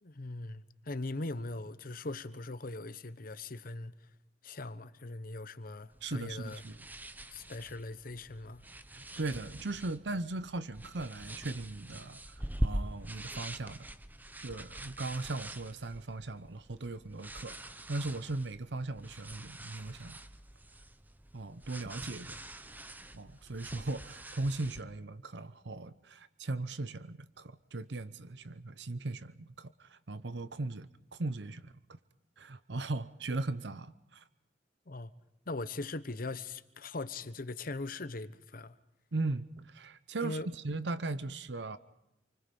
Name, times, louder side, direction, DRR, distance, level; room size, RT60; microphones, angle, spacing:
voice 1, 0.0-3.9 4.4-6.6 7.3-8.6 34.9-35.1 35.5-38.8 40.2-40.5, left 2 dB, 55° left, 1.0 m, -40 dB
sound 1, 5.9-24.8, right 1 dB, 10° right, 0.9 m, -43 dB
voice 2, 6.0-6.8 8.9-12.3 12.6-13.9 14.4-20.2 21.3-22.4 23.1-31.7 32.4-34.2 39.1-41.8, right 2 dB, 70° right, 0.8 m, -38 dB
28.5 x 24.5 x 5.4 m
head